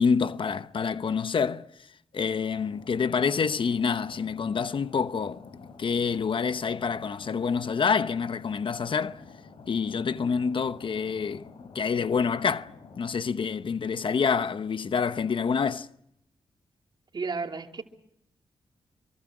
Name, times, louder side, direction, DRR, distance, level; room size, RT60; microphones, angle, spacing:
voice 1, 0.0-1.7 2.1-5.4 5.8-9.2 9.7-11.5 11.7-12.7 13.0-15.9, left 6 dB, 60° left, 1.0 m, -27 dB
sound 1, 2.5-13.0, left 4 dB, 75° left, 4.0 m, -49 dB
voice 2, 17.1-17.8, right 4 dB, 50° right, 2.9 m, -32 dB
26.5 x 24.5 x 6.2 m
cardioid pair, 60°, 10 cm